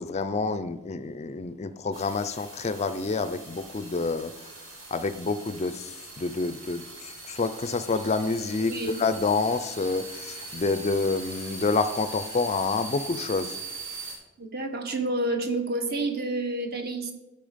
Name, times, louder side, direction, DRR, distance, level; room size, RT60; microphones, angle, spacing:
voice 1, 0.0-4.3 4.9-13.6, left 3 dB, 30° left, 12 dB, 0.4 m, -28 dB
sound 1, 1.9-14.2, right 2 dB, 75° right, 3.2 m, -41 dB
voice 2, 8.7-9.0 14.4-17.1, right 2 dB, 50° right, 4 dB, 1.3 m, -29 dB
12.5 x 5.7 x 5.1 m, 1.0 s
head